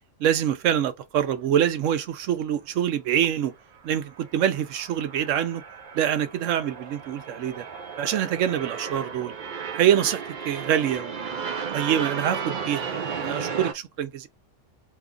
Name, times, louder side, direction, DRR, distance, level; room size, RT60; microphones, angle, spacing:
voice 1, 0.2-3.5 3.8-5.6 5.9-7.6 8.0-9.3 9.7-14.3, right 10 dB, 80° right, 1.0 m, -25 dB
sound 1, 3.8-13.7, right 6 dB, 50° right, 0.6 m, -34 dB
2.8 x 2.3 x 3.7 m
omnidirectional pair, 1.3 m